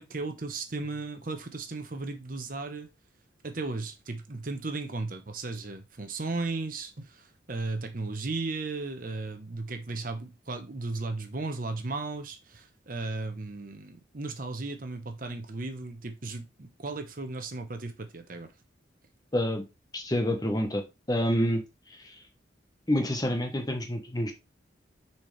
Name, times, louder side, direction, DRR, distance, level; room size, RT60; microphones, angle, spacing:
voice 1, 0.0-2.9 3.4-18.5, right 3 dB, 45° right, 0.9 m, -35 dB
voice 2, 19.3-19.6 19.9-20.8 21.1-21.6 22.0-22.1 22.9-24.3, equal, 20° left, 1.0 m, -27 dB
6.7 x 4.4 x 3.2 m
head